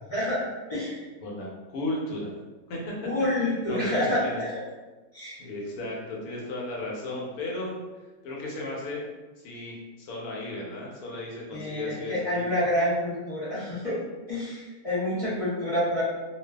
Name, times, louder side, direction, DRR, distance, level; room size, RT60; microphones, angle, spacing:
voice 1, 0.1-0.4 0.7-1.0 3.0-4.5 5.1-5.4 11.5-14.0 14.3-16.0, left 1 dB, 50° left, -9 dB, 0.4 m, -28 dB
voice 2, 1.2-2.3 2.7-2.9 3.6-4.4 5.4-7.7 8.2-9.0 9.4-12.5, left 2 dB, 80° left, -3 dB, 1.2 m, -35 dB
2.5 x 2.3 x 2.3 m, 1.2 s
omnidirectional pair, 1.5 m